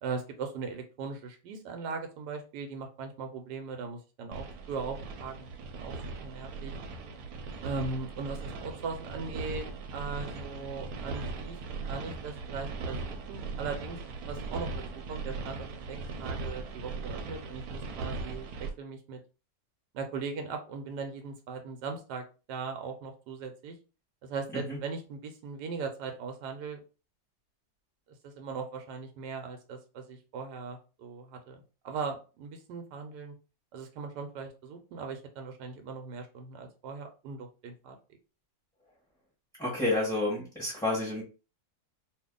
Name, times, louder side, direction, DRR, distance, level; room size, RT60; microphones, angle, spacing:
voice 1, 0.0-5.4 5.7-6.7 7.6-9.7 9.9-11.6 11.9-14.0 14.3-14.7 15.1-19.2 19.9-23.8 24.2-26.8 28.2-33.3 33.7-37.9, right 4 dB, 90° right, 5 dB, 1.2 m, -39 dB
sound 1, 4.3-18.7, right 4 dB, 70° right, 1.0 m, -39 dB
voice 2, 39.6-41.2, left 2 dB, 5° left, -5 dB, 0.8 m, -29 dB
2.7 x 2.6 x 3.6 m, 0.33 s
omnidirectional pair, 1.8 m